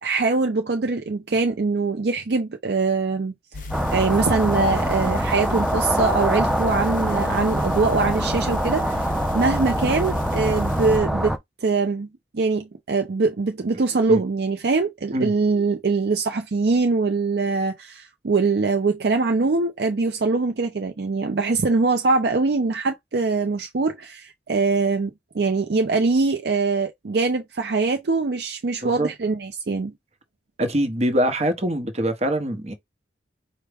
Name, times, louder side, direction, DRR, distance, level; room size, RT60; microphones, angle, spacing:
voice 1, 0.0-3.3 3.6-9.1 9.3-12.1 12.3-29.9, right 3 dB, 60° right, 0.5 m, -23 dB
sound 1, 3.5-11.0, left 3 dB, 50° left, 0.6 m, -34 dB
sound 2, 3.7-11.4, equal, ahead, 0.4 m, -24 dB
voice 2, 30.6-32.7, right 1 dB, 35° right, 0.9 m, -23 dB
4.7 x 2.1 x 3.3 m
head